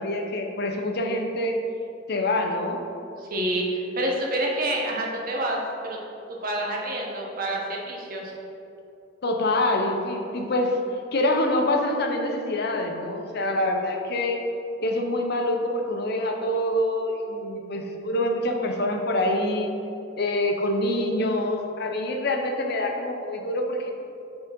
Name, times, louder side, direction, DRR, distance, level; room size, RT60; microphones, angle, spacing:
voice 1, 0.0-1.6 2.1-2.8 9.2-10.8 11.1-14.4 14.8-19.7 20.2-23.9, left 1 dB, 60° left, 3 dB, 0.7 m, -25 dB
voice 2, 3.2-6.0 6.4-8.3, right 1 dB, 50° right, -1 dB, 1.1 m, -28 dB
6.7 x 3.9 x 5.3 m, 2.8 s
head